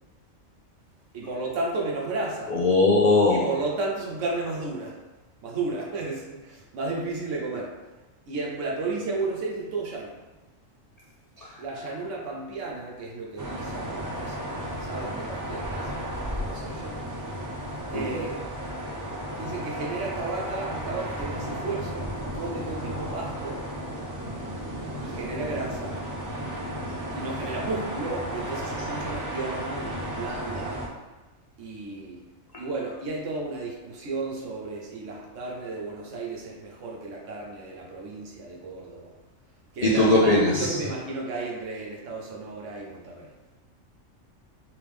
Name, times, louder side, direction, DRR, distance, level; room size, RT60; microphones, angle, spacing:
voice 1, 1.1-2.6 3.3-5.0 5.4-7.8 8.3-10.2 11.6-17.0 17.9-18.5 19.4-23.7 25.0-26.0 27.1-30.8 31.6-32.2 32.6-39.1 39.7-43.3, right 3 dB, 70° right, -1 dB, 1.1 m, -33 dB
voice 2, 2.5-3.5 17.9-18.0 39.8-40.7, left 2 dB, 60° left, -5 dB, 0.4 m, -19 dB
sound 1, 13.4-30.9, equal, 30° right, 0.3 m, -34 dB
3.5 x 3.4 x 3.3 m, 1.1 s
omnidirectional pair, 1.4 m